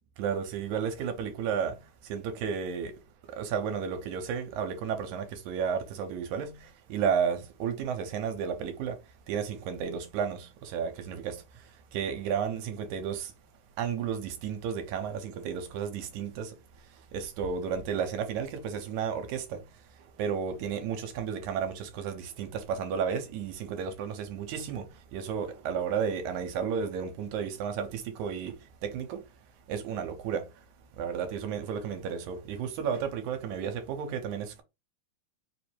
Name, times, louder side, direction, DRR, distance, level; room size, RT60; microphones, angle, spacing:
voice 1, 0.2-3.0 3.3-9.0 9.3-13.3 13.8-16.6 16.9-19.7 20.0-29.3 29.7-30.5 30.9-34.6, right 7 dB, 75° right, 2.1 m, -33 dB
5.0 x 2.0 x 4.4 m
omnidirectional pair, 3.5 m